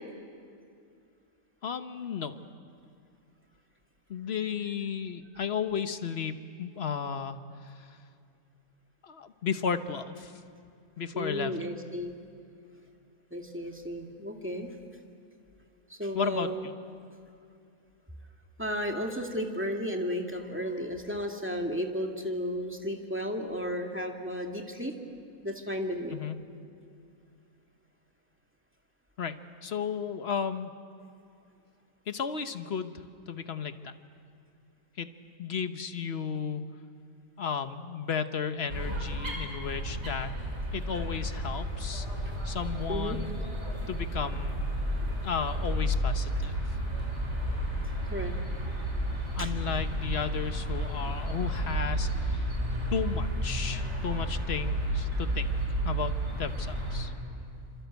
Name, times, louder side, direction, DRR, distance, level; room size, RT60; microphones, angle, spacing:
voice 1, 1.6-2.4 4.1-7.4 7.8-7.9 9.0-10.3 11.0-11.5 16.1-16.7 26.1-26.4 29.2-29.4 29.6-30.7 32.1-33.9 35.0-35.1 35.4-36.7 37.4-40.3 40.7-42.1 42.4-43.3 43.9-44.6 45.2-46.5 49.4-52.5 52.9-55.5 55.8-57.1, left 7 dB, 50° left, 9 dB, 1.3 m, -34 dB
voice 2, 11.1-12.1 13.3-14.7 15.9-16.7 18.6-25.0 25.4-26.2 42.9-43.2 48.1-48.3 49.4-49.5, equal, 10° right, 2 dB, 2.2 m, -33 dB
sound 1, 38.7-57.0, equal, 50° right, 5.6 m, -32 dB
27.0 x 26.5 x 8.2 m, 2.4 s
omnidirectional pair, 1.5 m